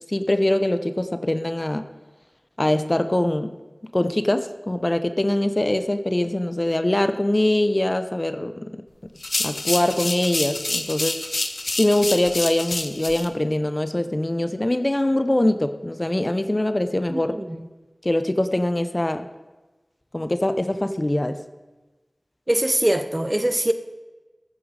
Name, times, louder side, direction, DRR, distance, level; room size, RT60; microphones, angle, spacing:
voice 1, 0.1-1.9 2.6-3.5 3.9-8.8 9.4-11.2 11.8-17.3 18.0-19.3 20.1-21.4, left 1 dB, 30° left, 10 dB, 0.7 m, -23 dB
sound 1, 9.2-13.3, left 2 dB, 65° left, 1.0 m, -28 dB
voice 2, 17.1-17.6 22.5-23.7, right 1 dB, 25° right, 10 dB, 0.9 m, -22 dB
14.5 x 9.1 x 4.9 m, 1.2 s
wide cardioid pair, 55°, 0 cm